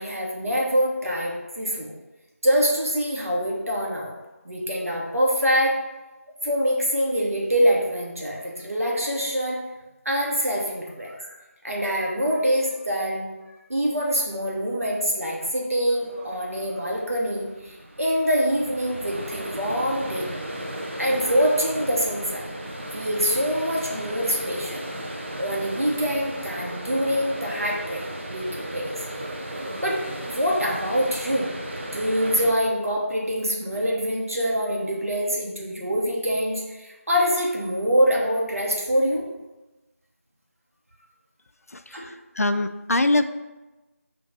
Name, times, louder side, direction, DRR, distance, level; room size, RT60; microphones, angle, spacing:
voice 1, 0.0-1.9 2.4-4.1 4.4-5.8 6.4-9.6 10.0-11.4 11.6-13.2 13.7-20.4 21.0-22.5 22.9-24.9 25.4-28.0 28.3-28.9 29.8-30.0 30.2-31.5 31.9-39.3 41.9-42.1, equal, 70° right, -3 dB, 1.3 m, -25 dB
sound 1, 15.9-32.5, right 1 dB, 50° right, 0.7 m, -35 dB
voice 2, 41.7-43.2, left 2 dB, 75° left, 10 dB, 0.3 m, -24 dB
5.1 x 2.6 x 4.0 m, 1.1 s
figure-of-eight pair, 170°, 8 cm